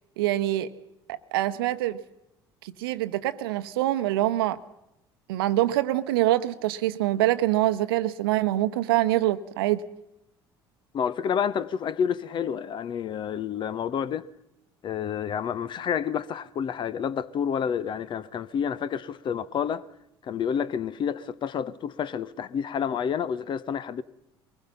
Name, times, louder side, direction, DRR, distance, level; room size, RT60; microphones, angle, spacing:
voice 1, 0.2-0.7 1.1-2.0 2.6-4.6 5.3-9.8, right 15 dB, 65° right, 0.9 m, -25 dB
voice 2, 10.9-14.3 14.8-19.9 20.2-24.0, left 8 dB, 35° left, 0.9 m, -29 dB
23.5 x 20.0 x 5.6 m
figure-of-eight pair, 60°, 13 cm